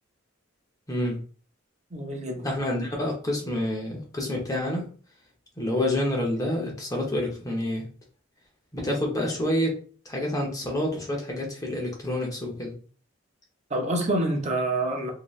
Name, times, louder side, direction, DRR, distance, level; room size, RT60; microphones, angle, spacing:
voice 1, 0.9-1.2 2.4-4.8 5.6-7.8 8.7-9.8 10.0-12.7, left 1 dB, 20° left, 0.8 m, -28 dB
voice 2, 1.9-2.5 13.7-15.1, right 1 dB, 35° right, 0.8 m, -27 dB
2.9 x 2.8 x 3.1 m
head